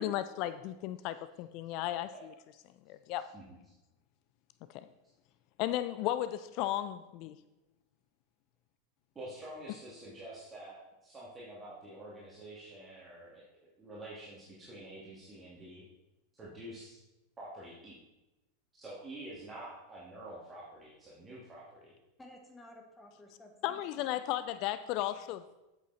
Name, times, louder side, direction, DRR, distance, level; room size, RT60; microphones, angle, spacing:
voice 1, 0.0-2.3 2.9-3.2 4.7-4.9 5.6-7.4 23.6-25.4, left 13 dB, 50° left, 12 dB, 0.4 m, -35 dB
voice 2, 9.1-15.8 16.3-17.0 17.4-18.0 18.8-21.9, right 1 dB, 20° right, -7 dB, 2.6 m, -48 dB
voice 3, 22.2-24.3, left 1 dB, 15° left, 2 dB, 1.6 m, -54 dB
8.1 x 7.8 x 4.2 m, 0.99 s
figure-of-eight pair, 85°, 0 cm